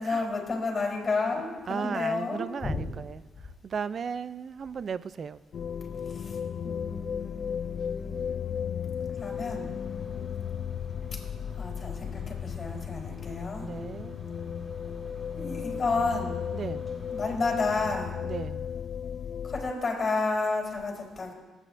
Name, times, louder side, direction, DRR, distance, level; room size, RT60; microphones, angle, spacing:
voice 1, 0.0-2.9 6.1-8.6 9.2-9.7 11.6-13.7 15.3-16.4 17.1-18.1 19.4-21.3, left 3 dB, 35° left, 0 dB, 3.6 m, -31 dB
voice 2, 1.7-3.2 3.6-5.4 13.1-13.2 13.6-14.2 16.5-16.9 18.2-18.7, right 6 dB, 50° right, 16 dB, 0.4 m, -35 dB
sound 1, 5.5-19.7, left 7 dB, 55° left, 0.4 m, -35 dB
sound 2, 9.2-17.9, left 6 dB, 15° right, 4.5 m, -46 dB
22.0 x 9.0 x 2.6 m, 1.2 s
cardioid pair, 90°, 0 cm